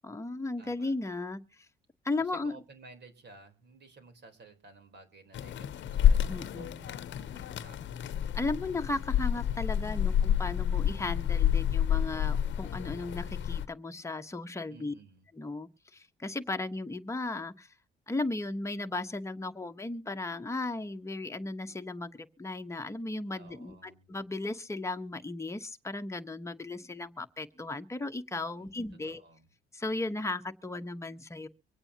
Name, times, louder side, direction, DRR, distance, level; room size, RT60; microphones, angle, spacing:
voice 1, 0.0-1.4 2.0-2.5 6.3-6.9 8.3-14.9 15.4-17.7 18.1-29.2 29.7-31.5, left 2 dB, 15° left, 1.1 m, -36 dB
voice 2, 0.6-0.9 2.2-8.1 9.9-10.3 14.7-15.3 23.4-24.1 28.6-29.5, right 3 dB, 60° right, 3.8 m, -55 dB
sound 1, 5.3-13.6, left 9 dB, 70° left, 0.9 m, -29 dB
24.5 x 8.8 x 2.9 m
cardioid pair, 90°, 20 cm